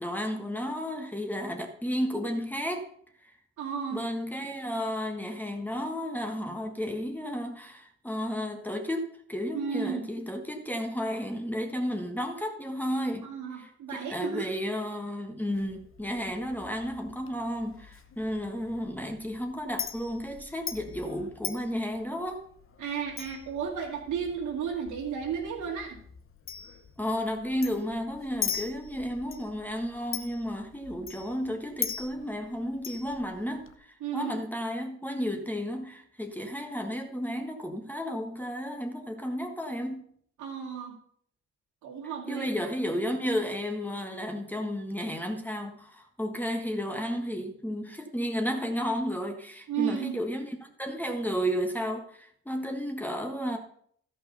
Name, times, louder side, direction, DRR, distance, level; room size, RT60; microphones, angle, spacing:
voice 1, 0.0-2.9 3.2-3.3 3.9-13.3 13.6-22.5 27.0-40.0 42.3-53.6, equal, 5° left, 1.4 m, -33 dB
voice 2, 3.6-4.0 9.5-10.1 13.2-14.5 22.8-26.0 34.0-34.3 40.4-41.0 41.8-42.5 49.7-50.2, right 7 dB, 80° right, 2.4 m, -33 dB
Chink clink, 15.5-33.8, left 7 dB, 45° left, 1.0 m, -41 dB
12.5 x 5.6 x 5.4 m
cardioid pair, 90°, 30 cm